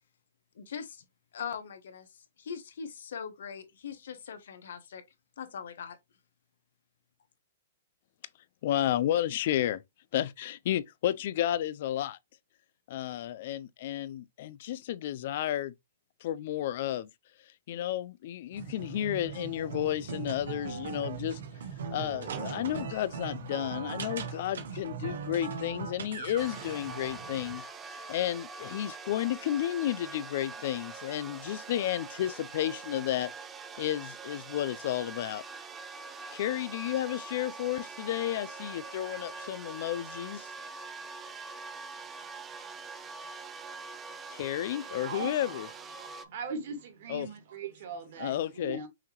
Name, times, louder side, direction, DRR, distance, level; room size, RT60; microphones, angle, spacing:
voice 1, 0.5-1.0 1.3-5.0 5.4-6.0, left 7 dB, 70° left, 1.1 m, -41 dB
voice 2, 8.6-9.8 10.1-12.2 12.9-15.7 16.2-17.1 17.7-21.4 21.9-27.6 28.1-33.3 33.8-35.4 36.3-40.5 44.3-45.7 47.1-47.3 48.2-48.8, left 12 dB, 50° left, 0.4 m, -32 dB
sound 1, 18.5-27.6, right 6 dB, 75° right, 1.2 m, -39 dB
sound 2, 26.4-46.2, right 4 dB, 15° right, 0.5 m, -44 dB
voice 3, 44.8-45.6 46.0-48.9, right 5 dB, 55° right, 2.0 m, -40 dB
5.7 x 2.9 x 3.0 m
hypercardioid pair, 150°, 0 cm